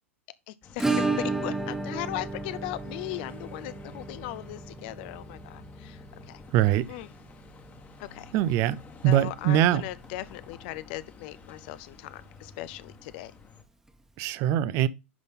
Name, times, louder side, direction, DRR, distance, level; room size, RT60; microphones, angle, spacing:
voice 1, 0.5-6.0 6.3-6.4 6.9-7.1 8.0-8.3 9.0-13.3, left 16 dB, 50° left, 0.6 m, -38 dB
Bus, 0.6-13.6, left 5 dB, 25° left, 1.4 m, -50 dB
Acoustic guitar / Strum, 0.8-9.4 9.7-9.8 10.0-10.1 10.5-10.6 12.7-12.8 13.9-14.0, right 3 dB, 5° right, 1.3 m, -34 dB
voice 2, 6.5-6.9 8.3-9.8 14.2-14.9, right 12 dB, 40° right, 0.6 m, -23 dB
10.5 x 4.0 x 3.6 m
figure-of-eight pair, 95°, 7 cm